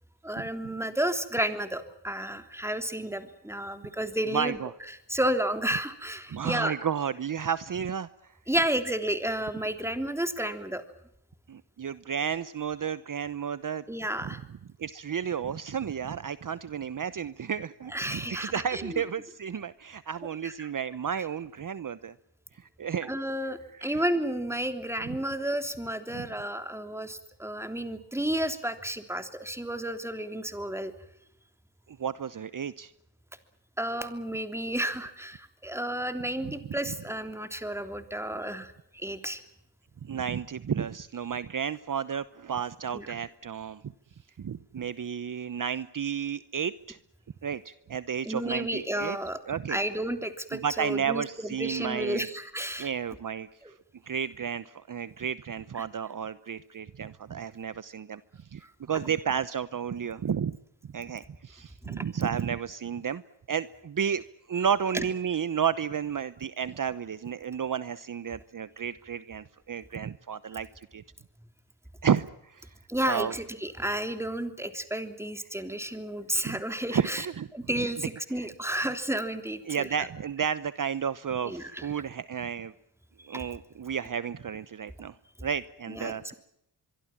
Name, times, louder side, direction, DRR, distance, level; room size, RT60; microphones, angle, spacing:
voice 1, 0.2-4.6 5.1-6.7 8.5-10.8 13.9-14.4 17.9-19.0 20.4-20.7 23.0-30.9 33.8-39.4 42.9-43.1 48.2-49.4 49.7-51.2 51.6-52.9 53.6-53.7 61.8-62.0 64.9-65.0 72.9-77.2 77.5-79.9 81.4-81.9 83.3-83.5 85.9-86.2, right 1 dB, 5° right, 8 dB, 3.3 m, -32 dB
voice 2, 4.3-4.7 6.3-8.3 11.5-13.8 14.2-14.3 14.8-22.1 22.6-23.1 23.7-24.0 26.1-26.3 31.9-32.9 36.4-36.5 36.9-37.0 40.0-43.9 44.4-47.0 47.4-49.2 49.5-49.8 50.5-52.3 52.8-53.8 54.0-60.6 60.9-63.2 63.5-64.2 64.5-71.0 72.0-72.7 73.1-73.3 76.4-76.6 76.9-77.5 78.4-78.5 79.7-82.7 83.3-86.3, right 7 dB, 45° right, 15 dB, 0.9 m, -32 dB
24.5 x 23.5 x 7.4 m, 0.81 s
cardioid pair, 85°, 43 cm